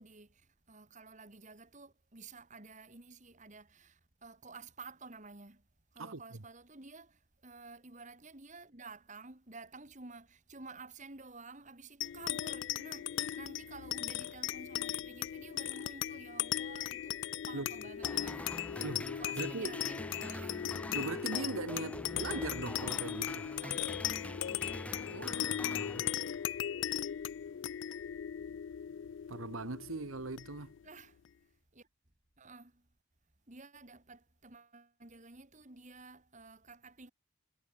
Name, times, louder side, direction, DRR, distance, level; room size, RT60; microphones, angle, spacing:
voice 1, 0.0-5.6 5.9-20.8 23.5-23.8 30.8-31.2 31.7-31.9 32.4-32.9 33.5-37.1, right 3 dB, 35° right, 2.5 m, -52 dB
sound 1, 12.0-30.8, left 11 dB, 60° left, 0.3 m, -38 dB
sound 2, 18.0-26.6, left 1 dB, 5° left, 1.2 m, -45 dB
voice 2, 18.8-19.7 20.9-23.5 25.1-26.0 29.3-30.7, right 3 dB, 80° right, 1.3 m, -40 dB
head